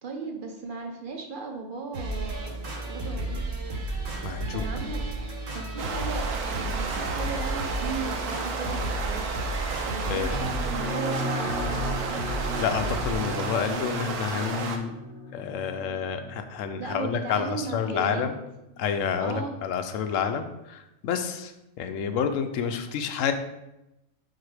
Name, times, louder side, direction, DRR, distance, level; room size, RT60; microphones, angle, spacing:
voice 1, 0.0-3.5 4.5-5.0 5.5-9.3 9.8-12.1 16.8-18.3 19.2-19.6, right 4 dB, 45° right, 3 dB, 0.8 m, -36 dB
sound 1, 1.9-13.2, right 2 dB, 60° right, 1.3 m, -33 dB
voice 2, 4.2-4.7 10.1-10.5 12.6-14.9 15.3-18.4 18.8-23.3, left 7 dB, 70° left, 8 dB, 0.9 m, -29 dB
sound 2, 5.8-14.8, right 4 dB, 90° right, 1.2 m, -33 dB
sound 3, 10.3-19.2, left 1 dB, 5° right, 1.3 m, -37 dB
4.7 x 4.1 x 4.9 m, 0.93 s
omnidirectional pair, 1.5 m